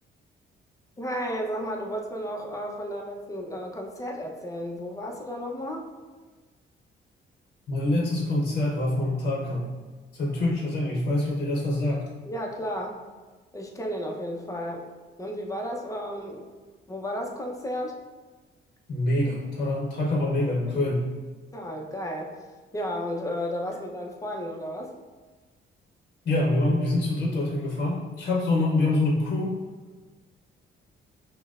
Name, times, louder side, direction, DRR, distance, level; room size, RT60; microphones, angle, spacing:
voice 1, 1.0-5.9 12.3-13.0 13.5-14.9 15.2-16.5 16.9-18.0 21.5-22.5 22.7-24.9, equal, 15° left, 1 dB, 0.7 m, -33 dB
voice 2, 7.7-9.7 10.1-12.1 18.9-21.0 26.2-29.6, left 2 dB, 50° left, -3 dB, 0.8 m, -25 dB
6.1 x 2.2 x 2.4 m, 1.3 s
cardioid pair, 90°, 20 cm